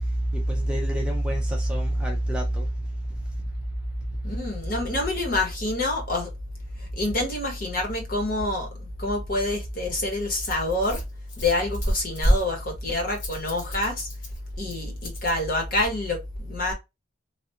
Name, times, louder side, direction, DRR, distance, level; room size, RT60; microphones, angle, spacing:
voice 1, 0.3-2.7, right 1 dB, 5° right, 0.5 m, -25 dB
voice 2, 4.2-6.3 6.8-11.0 11.4-14.1 14.6-16.7, left 2 dB, 45° left, 1.1 m, -27 dB
Rattle, 9.3-15.4, equal, 70° left, 1.7 m, -30 dB
3.3 x 2.4 x 2.8 m
head